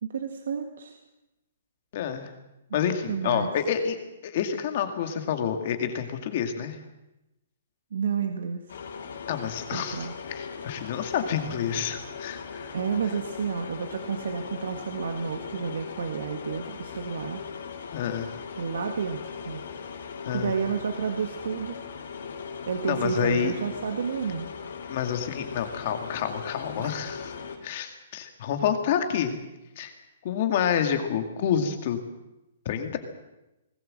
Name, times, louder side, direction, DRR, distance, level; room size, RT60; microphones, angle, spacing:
voice 1, 0.0-1.0 3.1-3.5 7.9-8.6 9.7-10.1 12.7-17.4 18.6-19.6 20.3-21.8 22.7-24.5 26.8-26.9, right 6 dB, 65° right, 5 dB, 1.9 m, -30 dB
voice 2, 1.9-2.3 2.7-4.0 4.2-6.8 9.3-12.7 17.9-18.4 20.3-20.5 22.8-23.5 24.9-27.3 27.6-29.4 29.8-29.9 30.2-32.0 32.7-33.0, left 8 dB, 30° left, 6 dB, 2.1 m, -28 dB
sound 1, 8.7-27.6, left 6 dB, 60° left, 3.9 m, -39 dB
20.0 x 18.5 x 7.7 m, 0.96 s
hypercardioid pair, 180°, 0 cm